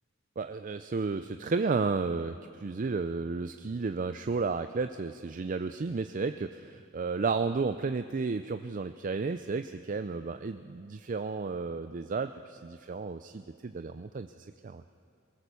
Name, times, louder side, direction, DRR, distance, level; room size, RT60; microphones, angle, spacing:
voice 1, 0.4-2.4 2.6-14.8, right 4 dB, 40° right, 10 dB, 0.4 m, -32 dB
22.5 x 18.5 x 6.9 m, 2.3 s
head